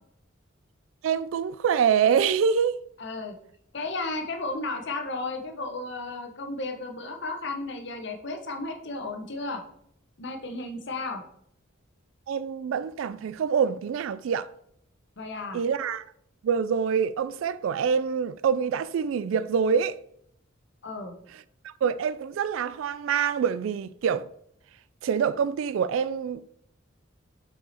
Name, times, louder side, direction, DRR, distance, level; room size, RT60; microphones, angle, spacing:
voice 1, 1.0-2.8 12.3-14.5 15.5-16.0 16.4-20.0 21.8-24.3 25.0-26.4, right 7 dB, 75° right, 0.3 m, -25 dB
voice 2, 3.0-3.4 3.7-9.6 10.2-11.2 15.2-15.6 20.8-21.1, left 2 dB, 60° left, 1.0 m, -34 dB
5.5 x 4.7 x 4.3 m
head